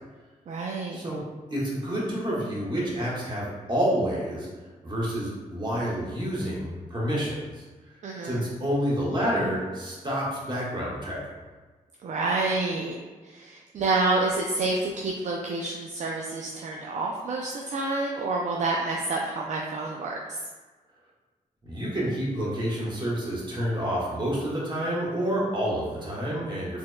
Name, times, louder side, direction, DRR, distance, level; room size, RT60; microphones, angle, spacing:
voice 1, 0.5-1.0 8.0-8.4 12.0-12.9 13.2-20.4, right 3 dB, 55° right, -1 dB, 0.4 m, -28 dB
voice 2, 1.5-4.5 4.8-7.6 8.2-11.2 21.6-26.8, equal, 35° right, -6 dB, 1.5 m, -28 dB
4.2 x 3.4 x 2.2 m, 1.3 s
cardioid pair, 75°, 14 cm